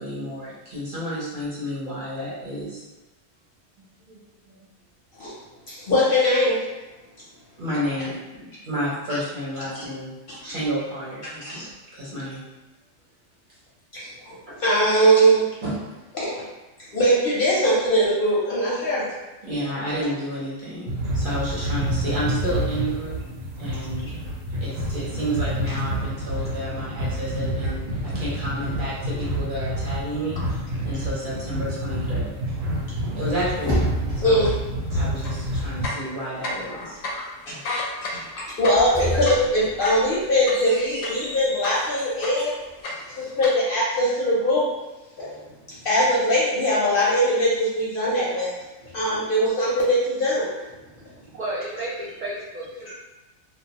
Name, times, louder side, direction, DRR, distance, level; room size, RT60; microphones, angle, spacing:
voice 1, 0.0-2.8 4.1-4.2 4.5-4.6 7.6-10.1 10.4-11.7 11.9-12.4 15.6-15.7 19.4-23.2 23.6-24.1 24.6-30.6 30.8-32.3 33.2-34.5 35.0-37.0 37.5-37.6, equal, 45° right, -8 dB, 0.8 m, -31 dB
voice 2, 5.7-6.6 10.3-10.4 11.4-11.7 13.9-14.1 14.6-15.5 16.1-16.4 16.9-19.1 34.2-34.5 34.9-35.0 36.7-36.9 37.1-37.2 38.1-38.2 38.6-42.5 43.2-44.7 45.2-45.4 45.8-48.5 48.9-50.5, equal, 55° left, -7 dB, 0.6 m, -21 dB
sound 1, 20.9-35.9, equal, 90° right, 1.0 m, -28 dB
sound 2, 33.0-34.5 38.6-41.8, equal, 15° right, 0.8 m, -30 dB
sound 3, 35.2-35.4 35.7-36.8 37.0-37.2 37.5-41.3 41.6-42.5 42.8-43.5, left 2 dB, 85° left, 1.0 m, -31 dB
voice 3, 42.9-43.3 45.2-45.9 48.8-48.9 50.9-52.9, right 2 dB, 70° right, -7 dB, 0.4 m, -34 dB
2.3 x 2.2 x 2.8 m, 1.1 s
omnidirectional pair, 1.3 m